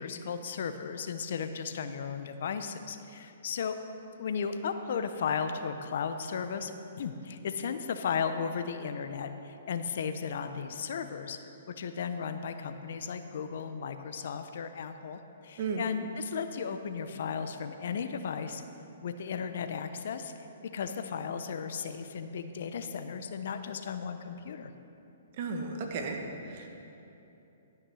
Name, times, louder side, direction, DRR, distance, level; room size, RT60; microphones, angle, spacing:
voice 1, 0.0-3.8 4.2-11.4 11.8-18.6 19.0-20.3 20.7-24.7, left 6 dB, 65° left, 8 dB, 0.7 m, -35 dB
voice 2, 25.4-26.7, right 4 dB, 50° right, 3 dB, 1.4 m, -34 dB
12.5 x 6.0 x 6.3 m, 2.9 s
hypercardioid pair, 135°, 0 cm